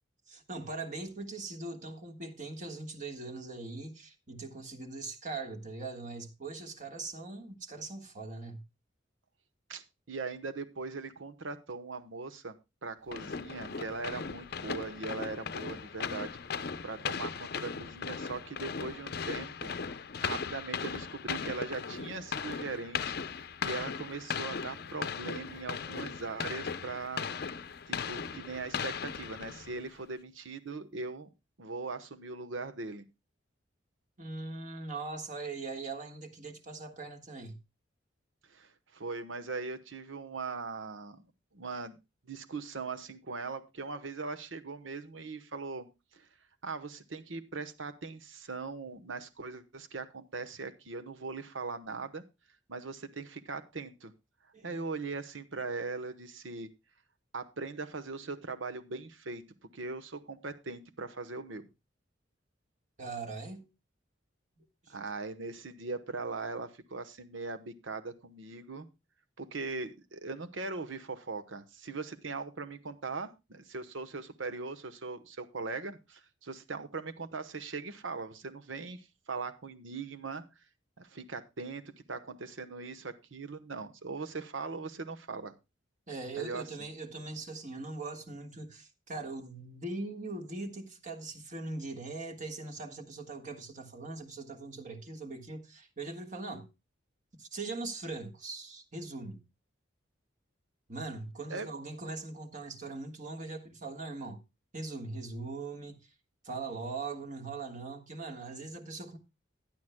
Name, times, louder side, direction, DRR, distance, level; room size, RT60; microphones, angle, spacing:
voice 1, 0.3-8.6 34.2-37.6 54.5-54.8 63.0-63.7 64.6-65.0 86.1-96.7 97.4-99.4 100.9-104.4 104.7-106.0 106.4-109.2, right 3 dB, 40° right, 1.5 m, -41 dB
voice 2, 9.7-12.5 12.8-27.3 27.9-31.3 31.6-33.0 38.5-41.2 41.5-42.0 42.3-45.9 46.1-46.3 46.6-52.2 52.7-54.1 54.6-56.7 57.3-59.4 59.7-61.7 64.9-68.9 69.4-80.4 81.0-85.5 86.4-86.6 101.5-101.7, right 4 dB, 90° right, 1.1 m, -40 dB
sound 1, 13.1-29.9, left 6 dB, 55° left, 0.6 m, -38 dB
16.0 x 10.5 x 2.2 m
head